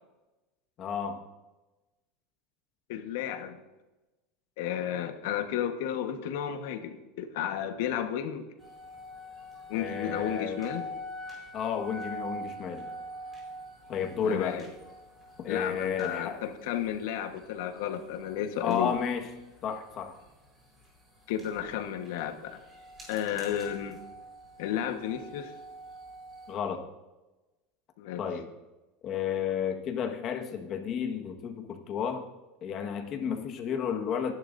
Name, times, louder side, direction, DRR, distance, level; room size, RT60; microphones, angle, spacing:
voice 1, 0.8-1.2 9.7-10.6 11.5-12.9 13.9-14.6 15.4-16.4 18.6-19.3 19.6-20.1 26.5-26.8 28.2-28.5 29.0-32.2 32.6-34.3, left 7 dB, 35° left, 4 dB, 1.5 m, -32 dB
voice 2, 2.9-3.6 4.6-8.5 9.7-10.8 14.2-14.7 15.5-18.9 21.3-22.6 23.1-24.0 24.6-25.5 28.0-28.2, left 10 dB, 75° left, 7 dB, 1.3 m, -33 dB
sound 1, 8.6-26.5, equal, 15° right, 4.7 m, -45 dB
23.5 x 11.0 x 2.7 m, 1.1 s
supercardioid pair, 150°, 0 cm